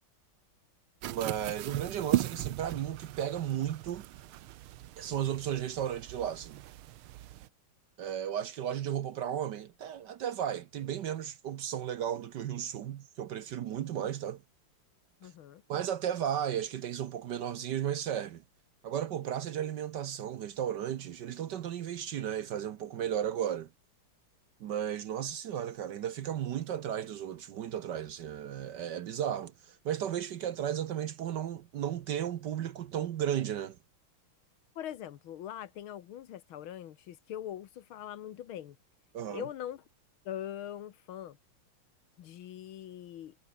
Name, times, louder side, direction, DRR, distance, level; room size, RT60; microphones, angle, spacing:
sound 1, 1.0-7.5, right 14 dB, 80° right, 1.6 m, -37 dB
voice 1, 1.1-4.1 5.0-6.6 8.0-14.4 15.7-18.4 18.8-23.7 24.6-33.8 39.1-39.4, right 10 dB, 60° right, 1.3 m, -34 dB
voice 2, 15.2-15.6 34.8-38.8 39.3-39.8 40.3-41.4 42.2-43.4, left 11 dB, 70° left, 1.8 m, -42 dB
omnidirectional pair, 2.4 m